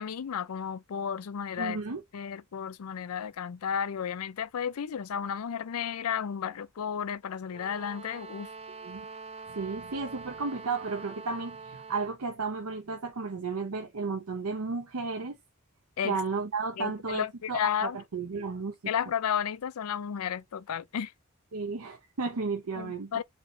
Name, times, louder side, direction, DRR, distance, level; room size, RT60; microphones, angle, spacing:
voice 1, 0.0-1.8 2.1-8.5 16.0-16.2 16.8-18.0 18.9-21.1 22.8-23.2, left 8 dB, 85° left, 0.5 m, -33 dB
voice 2, 1.6-2.0 8.8-9.1 9.5-15.4 16.0-18.7 21.5-23.1, right 4 dB, 90° right, 0.8 m, -33 dB
sound 1, 7.5-12.2, right 4 dB, 30° right, 0.4 m, -44 dB
4.5 x 2.9 x 3.8 m
head